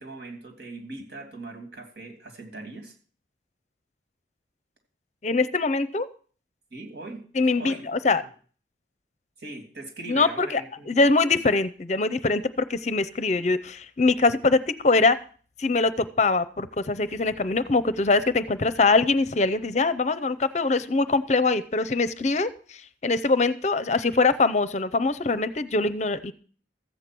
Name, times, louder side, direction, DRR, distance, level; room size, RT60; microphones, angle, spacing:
voice 1, 0.0-2.9 6.7-7.2 7.5-8.3 9.4-11.1, right 2 dB, 70° right, 4 dB, 2.8 m, -40 dB
voice 2, 5.2-6.1 7.4-8.2 10.1-10.6 10.9-15.2 15.6-26.3, left 3 dB, 40° left, 14 dB, 0.6 m, -23 dB
14.0 x 8.4 x 6.0 m, 0.43 s
head